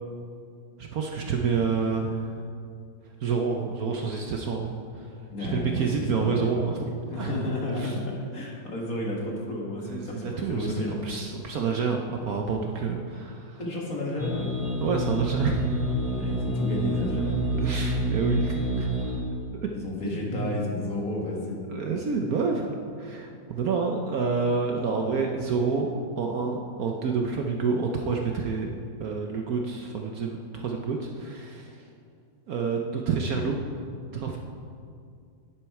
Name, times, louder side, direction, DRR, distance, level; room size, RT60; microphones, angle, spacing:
voice 1, 0.8-2.3 3.2-4.7 5.4-7.3 7.7-8.0 9.8-10.7 11.0-13.6 14.8-15.8 17.6-18.9 19.6-19.7 20.0-20.5 21.7-28.7 29.0-31.8 32.5-33.6 34.1-34.4, right 5 dB, 60° right, 2 dB, 1.1 m, -28 dB
voice 2, 5.3-6.5 7.1-11.0 13.6-14.5 16.2-17.4 19.7-21.7, left 2 dB, 50° left, -2 dB, 2.2 m, -32 dB
sound 1, 14.2-19.2, equal, ahead, 3.1 m, -28 dB
10.5 x 10.0 x 4.8 m, 2.3 s
omnidirectional pair, 2.0 m